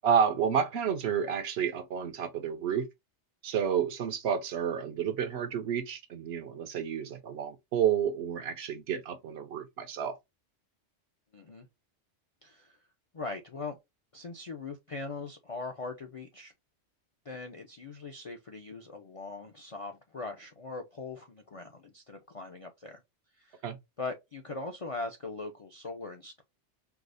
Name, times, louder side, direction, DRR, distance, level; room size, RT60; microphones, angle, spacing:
voice 1, 0.0-2.9 3.4-10.2 23.6-23.8, right 8 dB, 65° right, 0.8 m, -30 dB
voice 2, 11.3-11.7 12.4-12.8 13.1-13.8 14.1-16.5 17.3-23.0 23.4-23.6 24.0-26.4, left 3 dB, 50° left, 0.4 m, -40 dB
4.8 x 2.0 x 2.5 m
omnidirectional pair, 1.2 m